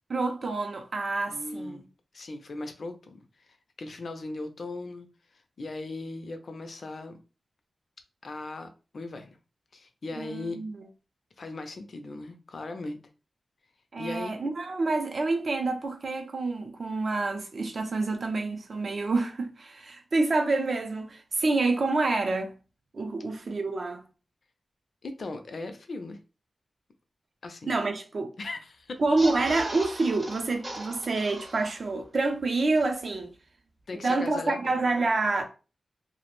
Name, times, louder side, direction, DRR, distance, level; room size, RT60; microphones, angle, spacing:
voice 1, 0.1-1.8 10.2-10.8 13.9-22.5 22.9-24.0 27.7-28.3 29.0-33.3 33.9-35.4, right 3 dB, 55° right, 0.4 m, -28 dB
voice 2, 1.3-1.8 2.1-3.2 3.8-5.1 5.6-7.2 8.2-8.7 8.9-9.4 9.7-10.6 11.4-13.0 14.0-14.3 25.0-26.2 27.4-27.7 28.4-29.0 33.9-34.7, left 2 dB, 55° left, 0.4 m, -38 dB
sound 1, 29.0-32.0 32.4-32.5 32.7-32.8, right 1 dB, 30° right, 0.8 m, -39 dB
2.4 x 2.0 x 2.9 m
wide cardioid pair, 150°, 0 cm